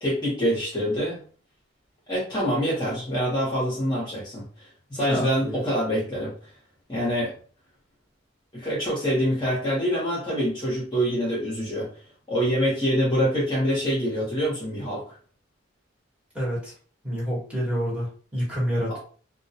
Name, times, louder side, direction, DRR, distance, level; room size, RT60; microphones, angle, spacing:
voice 1, 0.0-1.2 2.1-4.5 4.9-6.3 6.9-7.3 8.5-11.9 12.3-15.2 18.9-19.0, equal, 25° left, -5 dB, 0.8 m, -25 dB
voice 2, 5.1-5.6 16.3-16.7 17.0-19.0, equal, 5° right, -7 dB, 1.1 m, -28 dB
2.3 x 2.2 x 2.7 m, 0.42 s
head